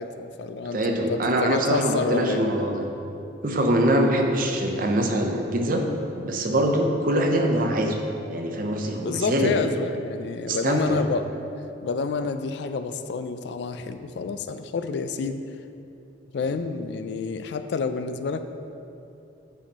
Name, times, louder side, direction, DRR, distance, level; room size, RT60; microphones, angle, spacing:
voice 1, 0.0-2.4 9.0-11.2 11.8-15.4 16.3-18.5, left 4 dB, 60° left, 9 dB, 0.3 m, -29 dB
voice 2, 0.7-2.9 3.4-5.8 6.2-8.0 8.3-9.6 10.5-11.0, right 1 dB, 45° right, 3 dB, 0.7 m, -23 dB
9.0 x 4.3 x 4.2 m, 2.7 s
head